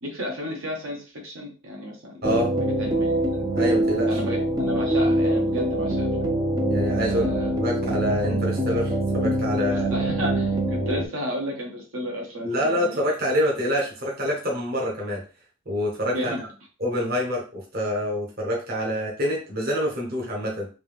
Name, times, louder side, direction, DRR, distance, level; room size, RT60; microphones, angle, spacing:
voice 1, 0.0-2.2 2.8-3.5 4.1-6.3 7.0-7.6 9.7-13.0 16.1-16.4, equal, 70° right, 0 dB, 1.1 m, -32 dB
sound 1, 2.2-11.0, right 1 dB, 20° right, 0.5 m, -24 dB
voice 2, 2.2-2.6 3.5-4.2 6.7-7.3 7.6-10.1 12.4-15.2 15.7-16.5 16.8-20.7, equal, 45° right, -2 dB, 1.1 m, -26 dB
3.5 x 2.8 x 3.4 m, 0.34 s
head